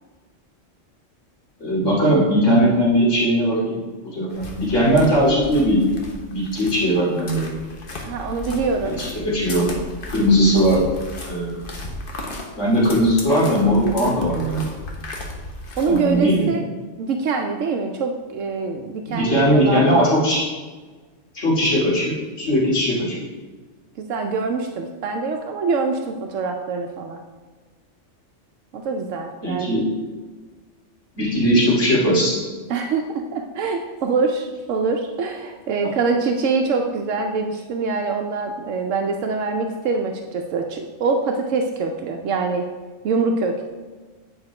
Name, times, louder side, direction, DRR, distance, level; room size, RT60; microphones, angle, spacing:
voice 1, 1.6-3.8 4.1-5.8 6.3-7.5 8.8-9.7 10.1-10.8 11.2-11.6 12.6-14.8 15.9-16.5 19.0-20.4 21.3-23.3 29.4-29.9 31.2-32.3, equal, 75° left, -6 dB, 3.0 m, -19 dB
sound 1, 4.3-16.2, left 1 dB, 45° left, 1.2 m, -35 dB
voice 2, 8.0-9.0 15.8-16.7 17.0-20.0 24.0-27.2 28.7-29.7 32.7-42.6 43.0-43.7, right 4 dB, 85° right, 3 dB, 1.0 m, -24 dB
8.7 x 5.1 x 4.7 m, 1.3 s
omnidirectional pair, 1.3 m